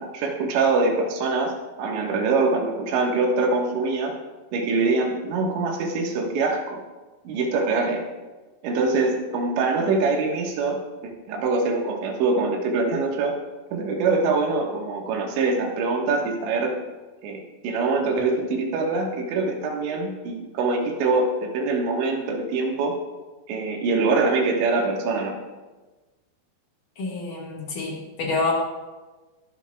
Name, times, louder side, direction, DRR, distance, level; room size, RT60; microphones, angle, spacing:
voice 1, 0.0-1.5 1.8-4.1 4.5-6.8 7.3-8.1 8.6-13.4 13.7-16.8 17.2-23.0 23.5-25.4, right 3 dB, 80° right, 1 dB, 3.8 m, -24 dB
voice 2, 27.0-28.5, left 3 dB, 55° left, -3 dB, 3.1 m, -27 dB
23.0 x 12.0 x 2.4 m, 1.2 s
omnidirectional pair, 5.2 m